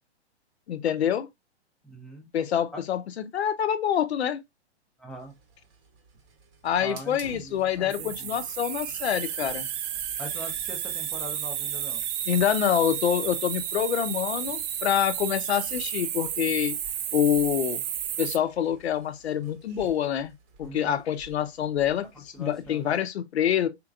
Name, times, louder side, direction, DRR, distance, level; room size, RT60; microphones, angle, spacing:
voice 1, 0.7-1.3 2.3-4.4 6.6-9.7 12.3-16.7 17.1-17.8 18.2-20.3 20.6-23.7, left 9 dB, 65° left, 0.6 m, -26 dB
voice 2, 1.8-2.3 2.7-2.8 5.0-5.3 6.8-8.4 10.2-12.0 20.6-21.0 22.3-22.9, equal, ahead, 0.4 m, -42 dB
Hiss, 5.1-23.0, right 5 dB, 30° right, 0.8 m, -48 dB
sound 1, 7.9-18.4, right 10 dB, 60° right, 0.5 m, -32 dB
3.6 x 2.9 x 2.3 m
hypercardioid pair, 120°, 34 cm